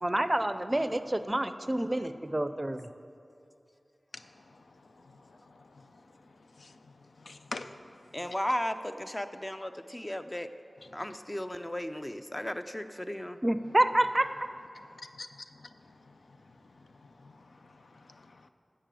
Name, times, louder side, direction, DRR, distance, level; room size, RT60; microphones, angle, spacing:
voice 1, 0.0-2.8 13.4-14.3, right 1 dB, 25° right, 11 dB, 0.5 m, -28 dB
voice 2, 7.2-7.7 15.2-15.7 17.2-17.3 18.1-18.5, left 3 dB, 90° left, 9 dB, 0.5 m, -43 dB
voice 3, 8.1-10.5 10.9-13.4, left 1 dB, 20° left, 9 dB, 0.6 m, -35 dB
11.5 x 7.6 x 7.6 m, 2.6 s
wide cardioid pair, 55°, 0 cm